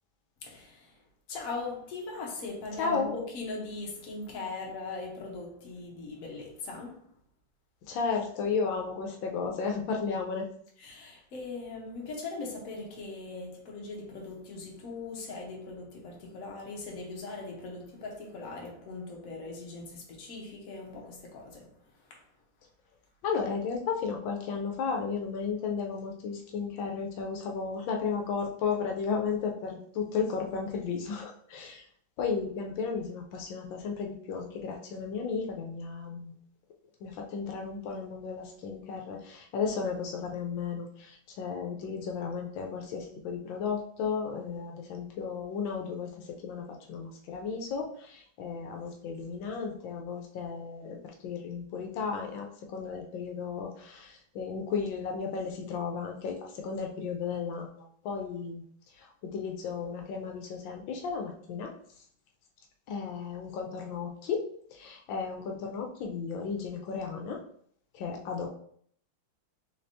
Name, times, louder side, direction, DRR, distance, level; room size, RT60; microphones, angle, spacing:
voice 1, 0.4-0.9 1.3-7.1 10.8-21.7, left 3 dB, 55° left, -1 dB, 1.2 m, -40 dB
voice 2, 2.8-3.2 7.9-10.5 23.2-31.8 32.2-36.3 37.0-51.0 51.2-58.6 59.0-61.7 62.9-67.4 67.9-68.5, left 5 dB, 85° left, 2 dB, 1.4 m, -34 dB
4.1 x 3.2 x 2.7 m, 0.62 s
omnidirectional pair, 2.0 m